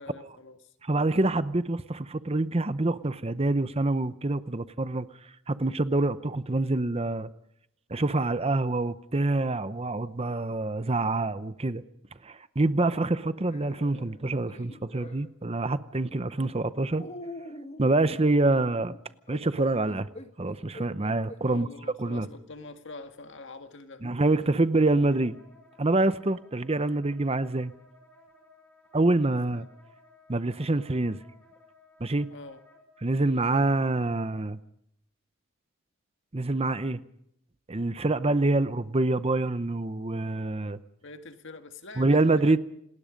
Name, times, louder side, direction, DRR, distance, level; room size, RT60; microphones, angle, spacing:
voice 1, 0.0-0.7 21.4-24.0 29.3-29.7 32.3-32.6 41.0-42.6, left 3 dB, 55° left, 8 dB, 2.0 m, -45 dB
voice 2, 0.8-5.1 5.5-7.3 7.9-11.8 12.2-17.0 17.8-18.9 19.3-20.1 20.4-21.7 22.0-22.3 24.0-25.4 25.8-27.7 28.9-29.7 30.3-31.2 32.0-32.3 33.0-34.6 36.3-37.0 37.7-40.8 42.0-42.6, right 2 dB, 25° right, 13 dB, 0.8 m, -26 dB
sound 1, 13.4-15.3 16.1-16.5 17.0-21.7 22.3-22.4 24.0-24.2, left 1 dB, 30° left, 1.9 m, -45 dB
Wind instrument woodwind instrument, 24.9-33.1, left 2 dB, 10° left, 5.8 m, -58 dB
28.0 x 20.0 x 5.2 m, 0.76 s
head